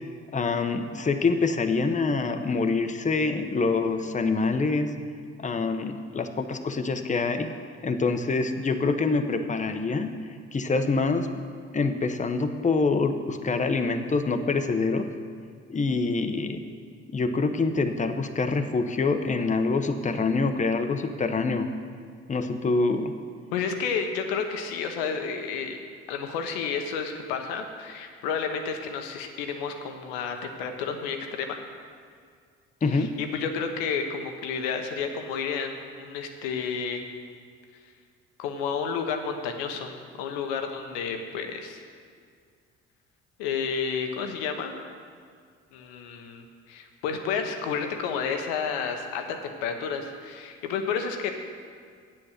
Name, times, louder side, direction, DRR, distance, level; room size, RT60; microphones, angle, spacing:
voice 1, 0.3-4.9 5.4-7.5 7.8-10.2 10.5-11.3 11.7-15.1 15.7-16.6 17.1-21.7 22.3-23.1 32.8-33.2, left 3 dB, 25° left, 7 dB, 0.9 m, -25 dB
voice 2, 23.5-25.8 26.1-31.6 32.9-37.0 38.4-41.9 43.4-44.7 45.7-51.3, left 6 dB, 90° left, 5 dB, 1.0 m, -31 dB
8.4 x 7.7 x 6.5 m, 2.1 s
supercardioid pair, 65°, 30 cm